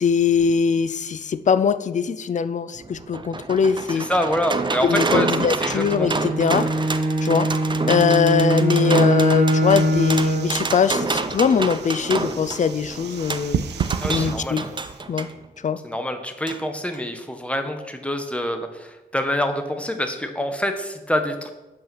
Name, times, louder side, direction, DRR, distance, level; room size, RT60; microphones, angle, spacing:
voice 1, 0.0-4.1 4.8-6.7 7.2-7.6 7.9-13.6 14.1-14.6 15.1-15.3 15.6-15.8, left 6 dB, 45° left, 13 dB, 0.4 m, -21 dB
sound 1, 2.8-15.3 16.5-16.6 16.9-17.0, right 3 dB, 30° right, 0.5 m, -28 dB
voice 2, 4.0-5.3 5.6-6.1 14.0-14.6 15.8-21.5, left 1 dB, 5° left, 6 dB, 1.1 m, -26 dB
Bowed string instrument, 5.8-10.6, right 1 dB, 55° right, 1.3 m, -21 dB
sound 2, 9.6-15.0, right 8 dB, 90° right, 0.5 m, -33 dB
7.2 x 5.5 x 5.8 m, 1.1 s
cardioid pair, 85°, 17 cm